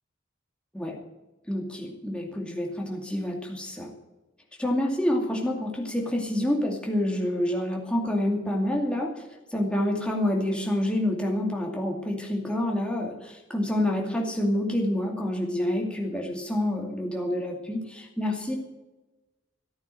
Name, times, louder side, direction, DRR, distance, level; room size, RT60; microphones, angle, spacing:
voice 1, 1.5-3.9 4.6-9.2 9.5-18.6, left 1 dB, 5° left, 0 dB, 2.4 m, -28 dB
14.5 x 9.0 x 7.7 m, 1.1 s
head